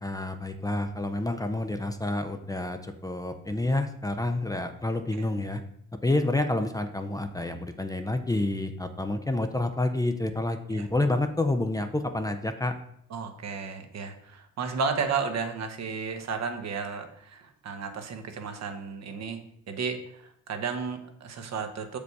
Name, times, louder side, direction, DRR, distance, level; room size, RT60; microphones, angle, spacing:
voice 1, 0.0-5.6 6.0-12.7, left 2 dB, 10° left, 7 dB, 0.6 m, -29 dB
voice 2, 13.1-19.4 19.7-22.0, right 5 dB, 60° right, 6 dB, 1.1 m, -33 dB
6.8 x 5.2 x 4.7 m, 0.73 s
cardioid pair, 90°, 30 cm